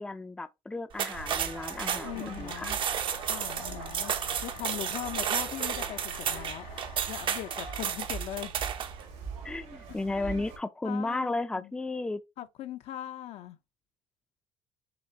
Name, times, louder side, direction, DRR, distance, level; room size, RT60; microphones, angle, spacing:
voice 1, 0.0-2.7 9.4-12.2, left 2 dB, 5° left, 0.5 m, -34 dB
sound 1, 0.9-9.0, right 8 dB, 45° right, 0.7 m, -33 dB
sound 2, 1.1-10.6, right 5 dB, 80° right, 2.2 m, -42 dB
sound 3, 1.2-8.0, left 7 dB, 90° left, 2.8 m, -49 dB
voice 2, 2.0-2.8 3.2-4.1 4.4-6.7 7.1-8.5 10.2-10.5 10.8-11.7 12.4-13.6, left 12 dB, 65° left, 0.7 m, -40 dB
6.9 x 2.5 x 2.9 m
cardioid pair, 105°, 12 cm